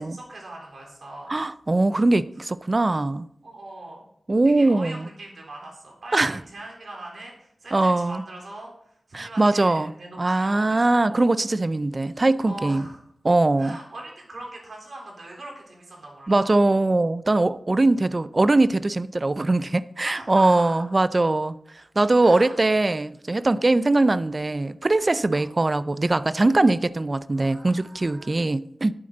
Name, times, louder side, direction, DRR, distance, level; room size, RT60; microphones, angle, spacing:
voice 1, 0.0-1.3 3.4-4.0 4.4-11.3 12.4-13.0 13.6-16.5 20.0-20.8 22.2-22.6 23.6-23.7 25.3-25.5 27.3-28.4, right 1 dB, 70° right, 3.7 m, -41 dB
voice 2, 1.3-3.3 4.3-5.1 6.1-6.4 7.7-8.2 9.1-9.9 10.2-12.9 13.2-13.8 16.3-21.6 22.0-28.9, right 2 dB, 35° right, 0.4 m, -21 dB
12.0 x 8.8 x 3.9 m
wide cardioid pair, 95°, 0 cm